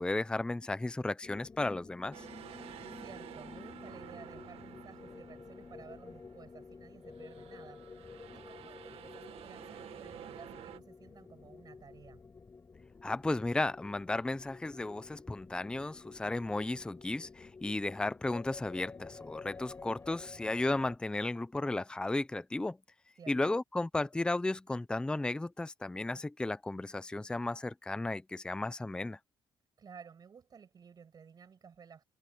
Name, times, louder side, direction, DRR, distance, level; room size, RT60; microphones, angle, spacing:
voice 1, 0.0-2.2 13.0-22.8 23.3-29.2, left 2 dB, 10° left, 0.6 m, -34 dB
sound 1, 1.2-21.0, left 4 dB, 25° left, 6.7 m, -51 dB
sound 2, 2.1-6.7 7.1-10.8, right 11 dB, 85° right, 1.7 m, -51 dB
voice 2, 3.0-7.9 8.3-12.2 23.2-23.4 29.8-32.0, right 6 dB, 40° right, 8.0 m, -54 dB
cardioid pair, 140°, 10 cm